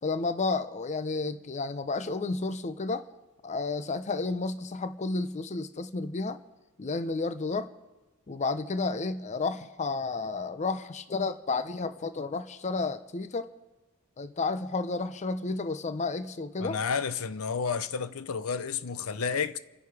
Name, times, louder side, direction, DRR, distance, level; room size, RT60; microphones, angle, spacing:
voice 1, 0.0-3.1 3.4-6.4 6.8-7.7 8.3-13.5 14.2-16.8, left 3 dB, 35° left, 0.6 m, -31 dB
voice 2, 16.6-19.6, left 6 dB, 80° left, 0.6 m, -31 dB
29.0 x 10.5 x 4.8 m
head